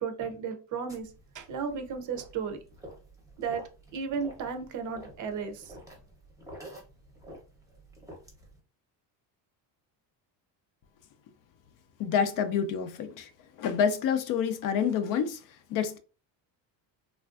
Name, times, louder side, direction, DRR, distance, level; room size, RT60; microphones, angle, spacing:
voice 1, 0.0-2.6 3.4-3.6 3.9-5.7, right 6 dB, 45° right, 0.6 m, -34 dB
sound 1, 0.9-8.6, right 1 dB, 10° right, 0.7 m, -50 dB
voice 2, 12.0-13.3 13.6-15.4 15.7-16.0, left 7 dB, 55° left, 0.4 m, -28 dB
3.3 x 2.4 x 2.4 m
cardioid pair, 155°, 41 cm